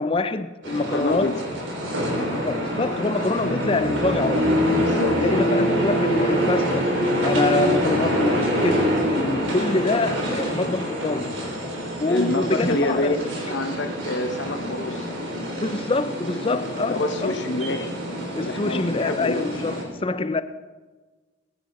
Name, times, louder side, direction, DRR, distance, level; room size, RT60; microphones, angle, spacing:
voice 1, 0.0-1.3 2.3-4.6 5.2-6.9 7.2-11.4 12.0-13.2 15.6-17.4 18.3-20.4, left 2 dB, 30° left, 0.5 m, -25 dB
sound 1, 0.6-19.8, equal, 80° right, 3.6 m, -25 dB
voice 2, 0.9-1.4 4.8-5.3 12.1-15.1 16.8-17.9 18.4-19.4, left 2 dB, 65° left, 0.9 m, -27 dB
21.0 x 10.0 x 4.2 m
head